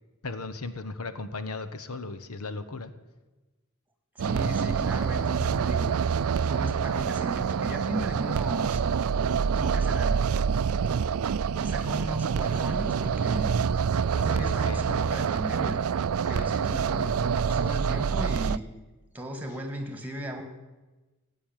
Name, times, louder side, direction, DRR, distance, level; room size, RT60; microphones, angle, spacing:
voice 1, 0.2-2.9 14.1-14.8 16.2-16.5, left 3 dB, 80° left, 10 dB, 1.1 m, -37 dB
voice 2, 4.2-5.9 6.4-8.9 9.5-10.2 11.6-13.6 14.1-15.8 16.3-18.6 19.1-20.4, right 1 dB, 5° right, 6 dB, 2.0 m, -36 dB
sound 1, 4.2-18.6, right 6 dB, 75° right, 0.4 m, -26 dB
16.5 x 9.0 x 9.1 m, 1.2 s
head